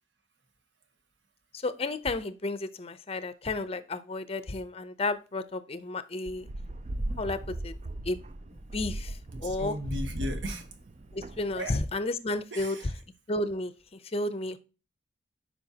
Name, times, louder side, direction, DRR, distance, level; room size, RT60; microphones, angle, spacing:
voice 1, 1.6-6.5 7.2-7.7 8.1-8.2 8.7-9.1 9.4-9.9 11.1-12.9 13.3-13.7 14.1-14.6, left 2 dB, 30° left, 0.6 m, -32 dB
sound 1, 6.3-11.7, right 1 dB, 35° right, 0.5 m, -37 dB
voice 2, 9.4-10.6 11.6-11.8 12.5-12.9, equal, 75° right, 1.5 m, -36 dB
8.8 x 5.7 x 2.8 m
head